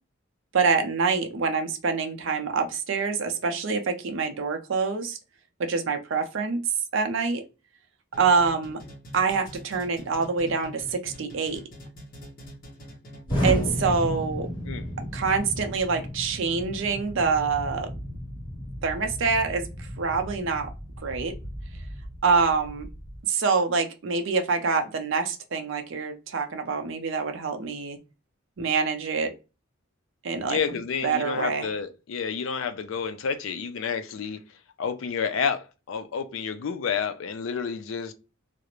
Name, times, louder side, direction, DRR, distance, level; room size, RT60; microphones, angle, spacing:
voice 1, 0.5-5.2 5.6-6.6 6.9-7.4 8.2-8.8 9.1-11.6 13.4-14.5 15.0-17.9 18.8-20.7 21.0-21.3 22.2-22.9 23.3-28.0 28.6-29.3 30.2-30.6 31.0-31.7, right 5 dB, 60° right, 0.5 m, -26 dB
sound 1, 8.1-13.7, equal, 40° left, 0.9 m, -44 dB
Explosion, 13.3-23.2, equal, 20° left, 1.2 m, -33 dB
voice 2, 30.4-34.4 34.8-38.1, left 6 dB, 65° left, 0.4 m, -30 dB
2.4 x 2.0 x 2.9 m
head